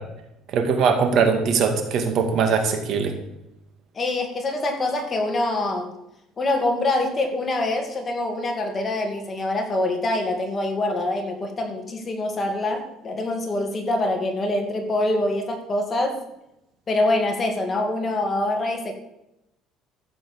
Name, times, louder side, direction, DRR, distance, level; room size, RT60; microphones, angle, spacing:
voice 1, 0.5-3.1, right 5 dB, 55° right, 5 dB, 2.4 m, -21 dB
voice 2, 3.9-5.9 6.4-16.2 16.9-18.9, left 2 dB, 25° left, 3 dB, 2.5 m, -25 dB
14.5 x 7.7 x 7.1 m, 0.87 s
cardioid pair, 135°, 0 cm